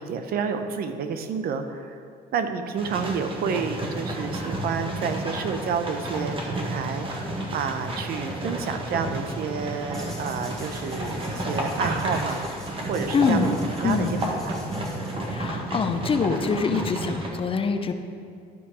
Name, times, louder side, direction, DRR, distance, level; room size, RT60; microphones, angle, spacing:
voice 1, 0.0-2.0 2.3-7.1 7.5-12.4 12.9-13.5 13.8-14.6, right 6 dB, 65° right, 8 dB, 0.8 m, -30 dB
sound 1, 2.8-17.3, right 1 dB, 30° right, 1.6 m, -31 dB
sound 2, 9.9-15.6, left 1 dB, ahead, 2.4 m, -47 dB
voice 2, 13.1-13.5 13.8-14.2 15.3-17.9, left 5 dB, 30° left, 7 dB, 0.7 m, -24 dB
12.0 x 5.5 x 4.9 m, 2.3 s
cardioid pair, 110°, 17 cm